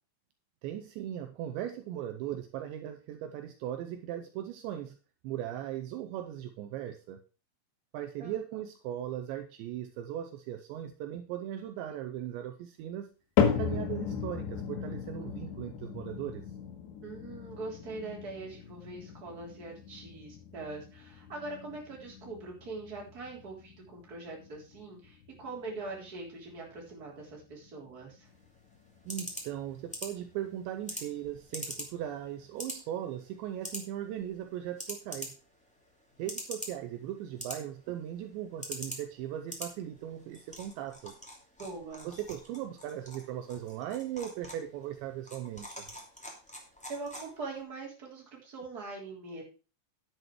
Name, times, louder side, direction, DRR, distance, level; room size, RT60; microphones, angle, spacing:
voice 1, 0.6-5.0 5.2-7.2 7.9-13.1 13.4-16.4 29.1-35.4 36.2-41.1 42.0-45.9, right 11 dB, 80° right, 7 dB, 2.9 m, -38 dB
sound 1, 13.4-29.7 30.0-30.5 31.1-31.2 32.0-32.1, left 7 dB, 70° left, 3.5 m, -36 dB
voice 2, 17.0-28.3 41.6-42.1 46.9-49.4, right 3 dB, 20° right, -2 dB, 3.3 m, -42 dB
sound 2, 28.2-47.6, equal, 5° left, 1.1 m, -45 dB
10.5 x 7.9 x 4.6 m, 0.34 s
omnidirectional pair, 5.5 m